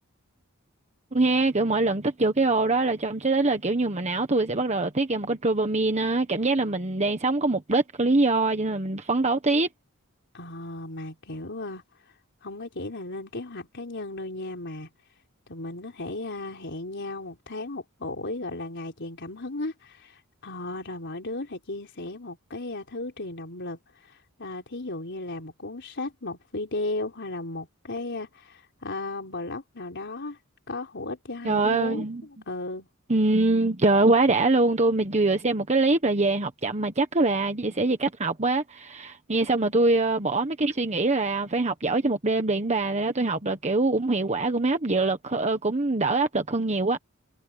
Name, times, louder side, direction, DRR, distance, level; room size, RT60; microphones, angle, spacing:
voice 1, 1.1-9.7 31.4-32.2 33.1-47.0, right 2 dB, 30° right, 1.3 m, -24 dB
voice 2, 10.3-11.8 12.4-14.9 15.5-30.4 30.7-32.9, left 2 dB, 55° left, 4.2 m, -35 dB
head